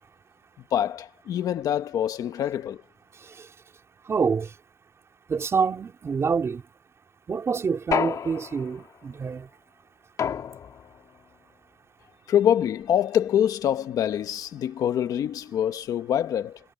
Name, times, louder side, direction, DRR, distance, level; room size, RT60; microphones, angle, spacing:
voice 1, 0.7-2.8 12.3-16.6, left 10 dB, 90° left, 1.5 m, -25 dB
voice 2, 4.1-4.5 5.3-6.6 7.3-9.5, right 5 dB, 50° right, 3.8 m, -26 dB
sound 1, 7.9-8.9 10.2-11.0, left 8 dB, 70° left, 2.6 m, -29 dB
cardioid pair, 90°, 6 cm